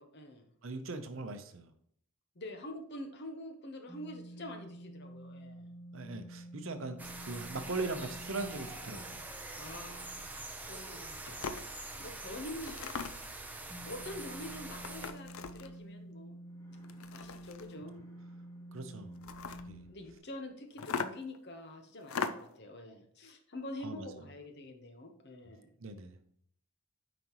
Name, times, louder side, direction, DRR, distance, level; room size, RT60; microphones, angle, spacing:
voice 1, 0.0-0.5 2.4-5.7 9.6-11.6 12.0-13.0 13.8-16.4 17.1-18.1 19.9-25.7, left 1 dB, 50° left, 6 dB, 0.9 m, -46 dB
voice 2, 0.6-1.7 5.9-9.2 18.7-19.2 19.7-19.8 23.8-24.1 25.8-26.2, right 3 dB, 60° right, 8 dB, 0.8 m, -40 dB
sound 1, 3.9-20.2, right 1 dB, 15° left, 1.0 m, -50 dB
sound 2, 7.0-15.1, right 2 dB, 5° right, 0.6 m, -45 dB
sound 3, 10.8-10.9 11.3-11.7 12.6-13.4 14.7-15.8 16.8-17.8 19.1-19.7 20.8-21.4 22.0-22.6, left 5 dB, 65° left, 0.5 m, -39 dB
9.3 x 5.0 x 3.1 m, 0.66 s
head